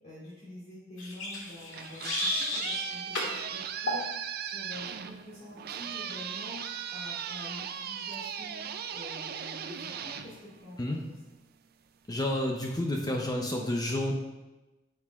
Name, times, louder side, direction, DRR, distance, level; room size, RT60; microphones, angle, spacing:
voice 1, 0.0-4.1 4.4-6.6 6.9-8.6 8.9-10.3 10.6-11.2, left 1 dB, 35° left, -9 dB, 2.1 m, -46 dB
sound 1, 1.0-2.8 3.1-3.3 3.9-4.1, left 1 dB, 85° left, 1.8 m, -32 dB
sound 2, 1.5-11.2, right 8 dB, 50° right, 0.4 m, -38 dB
voice 2, 12.1-14.1, left 1 dB, 20° left, 0 dB, 0.6 m, -30 dB
10.0 x 6.9 x 2.4 m, 1.1 s
head